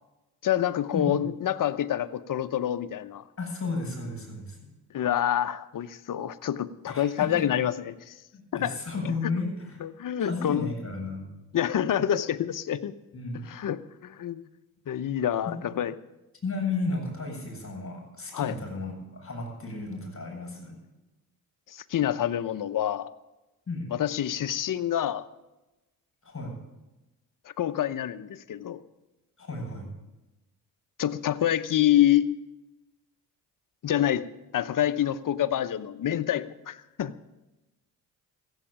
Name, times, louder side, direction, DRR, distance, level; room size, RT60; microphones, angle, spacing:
voice 1, 0.4-3.2 4.9-8.1 8.5-8.8 9.8-10.7 11.5-12.9 13.5-14.4 14.9-15.9 18.3-18.6 21.7-23.1 23.9-25.2 27.6-28.8 31.0-32.2 33.8-34.3 34.5-37.1, left 11 dB, 50° left, 13 dB, 0.9 m, -27 dB
voice 2, 3.4-4.7 6.9-7.4 8.3-9.8 10.2-11.3 13.1-13.5 16.4-20.8 23.7-23.9 26.2-26.5 29.4-29.9, left 3 dB, 30° left, 0 dB, 7.1 m, -33 dB
14.5 x 8.1 x 8.8 m, 1.0 s
supercardioid pair, 60°, 42 cm